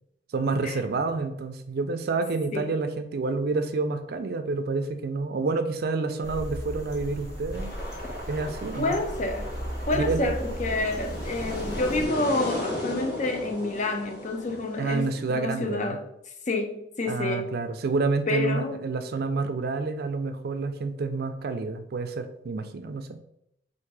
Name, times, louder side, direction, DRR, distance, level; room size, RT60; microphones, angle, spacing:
voice 1, 0.3-7.7 8.3-9.0 9.9-10.3 14.8-16.0 17.1-23.2, right 3 dB, 60° right, 8 dB, 0.4 m, -28 dB
sound 1, 6.2-12.1, equal, 15° left, 1.2 m, -36 dB
sound 2, 7.5-15.3, left 1 dB, 60° left, 1.3 m, -36 dB
voice 2, 8.8-9.5 9.9-16.0 16.5-17.5 18.3-18.8, left 2 dB, 45° left, 4 dB, 0.6 m, -28 dB
3.7 x 2.6 x 4.6 m, 0.76 s
head